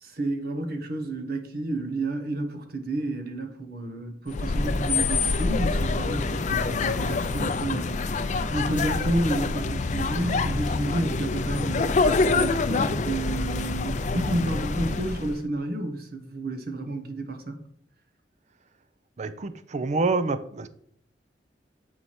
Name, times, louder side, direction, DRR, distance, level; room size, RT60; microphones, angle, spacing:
voice 1, 0.0-12.0 12.3-17.6, right 2 dB, 60° right, 1.0 m, -30 dB
sound 1, 4.3-15.4, left 3 dB, 45° left, 0.5 m, -26 dB
voice 2, 19.2-20.7, right 3 dB, 40° right, 0.5 m, -27 dB
7.8 x 4.6 x 4.2 m
head